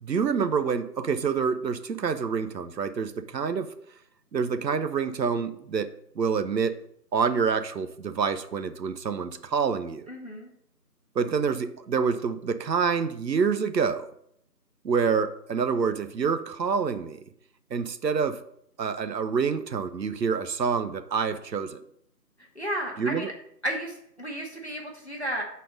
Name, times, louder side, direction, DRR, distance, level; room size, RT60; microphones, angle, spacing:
voice 1, 0.0-3.7 4.3-6.8 7.1-10.0 11.2-14.1 14.8-17.2 17.7-18.4 18.8-21.8 23.0-23.3, right 6 dB, 80° right, 0.7 m, -27 dB
voice 2, 10.1-10.5 22.5-23.3 23.6-25.4, right 1 dB, 40° left, 0.9 m, -33 dB
5.4 x 4.2 x 5.1 m
figure-of-eight pair, 170°, 50 cm